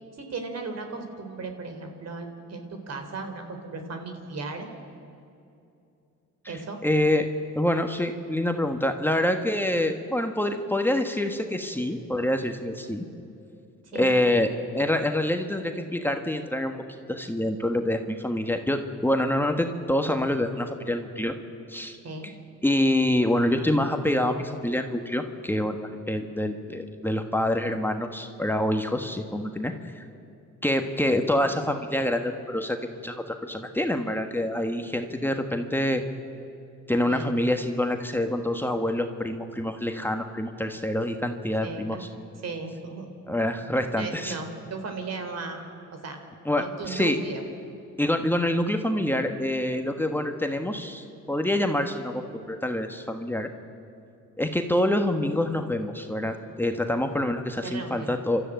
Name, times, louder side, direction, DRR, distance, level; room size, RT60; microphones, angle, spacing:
voice 1, 0.2-4.7 6.5-6.8 13.8-14.2 22.0-22.3 37.1-37.3 41.6-42.0 42.4-43.1 43.9-45.6 46.0-46.2 46.6-47.4 57.6-58.2, right 4 dB, 55° right, 5 dB, 3.8 m, -36 dB
voice 2, 6.4-7.3 7.5-13.0 13.9-16.7 17.1-21.3 21.7-22.0 22.6-30.0 30.6-36.0 36.9-42.1 43.3-44.3 46.4-47.2 48.0-53.5 54.4-58.4, left 1 dB, 5° left, 5 dB, 1.4 m, -26 dB
30.0 x 13.5 x 9.1 m, 2.6 s
cardioid pair, 90°, 30 cm